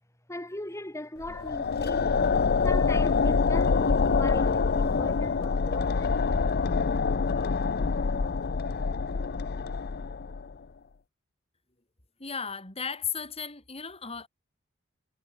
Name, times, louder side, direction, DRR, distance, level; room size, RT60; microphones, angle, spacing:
voice 1, 0.3-2.4 2.6-6.2, left 1 dB, 15° left, 3.7 m, -38 dB
sound 1, 1.2-10.5, left 4 dB, 50° left, 0.6 m, -26 dB
voice 2, 12.2-14.3, left 6 dB, 30° left, 4.8 m, -35 dB
head